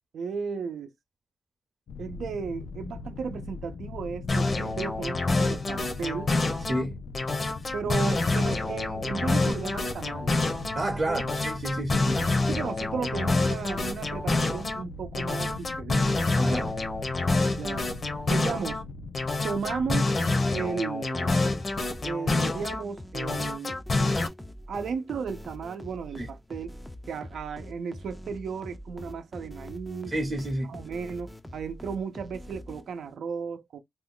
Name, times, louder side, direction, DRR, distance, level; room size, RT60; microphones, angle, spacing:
voice 1, 0.1-0.9 2.0-6.4 7.7-10.3 11.1-11.4 12.5-16.1 17.5-17.9 18.3-18.8 19.4-20.1 20.5-21.4 22.0-24.1 24.7-26.8 27.1-30.1 30.7-33.8, right 6 dB, 85° right, 0.6 m, -35 dB
sound 1, 1.9-20.0, left 4 dB, 80° left, 0.4 m, -41 dB
sound 2, 4.3-6.8 7.1-10.8 11.1-14.8 15.1-18.8 19.1-22.8 23.1-24.3, left 2 dB, 40° left, 0.7 m, -27 dB
voice 2, 10.7-12.2 16.4-16.8 26.2-26.3 30.1-30.7, right 1 dB, 30° right, 0.7 m, -30 dB
sound 3, 21.6-33.2, equal, 5° left, 0.4 m, -44 dB
2.6 x 2.2 x 3.6 m
wide cardioid pair, 155°, 0 cm